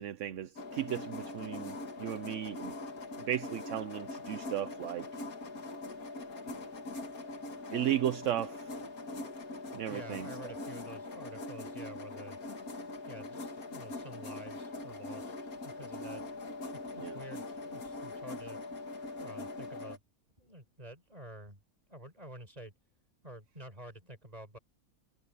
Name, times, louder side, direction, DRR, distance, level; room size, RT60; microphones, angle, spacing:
voice 1, 0.0-2.7 3.3-5.1 7.7-8.7 9.7-10.6 17.0-17.1, right 11 dB, 65° right, 1.0 m, -35 dB
sound 1, 0.6-20.0, left 2 dB, 75° left, 2.5 m, -42 dB
voice 2, 9.9-12.4 13.1-15.3 15.6-16.2 16.7-18.6 19.2-20.0 20.4-21.6 21.9-22.7 23.2-24.6, right 1 dB, 25° right, 4.8 m, -49 dB
omnidirectional pair, 1.5 m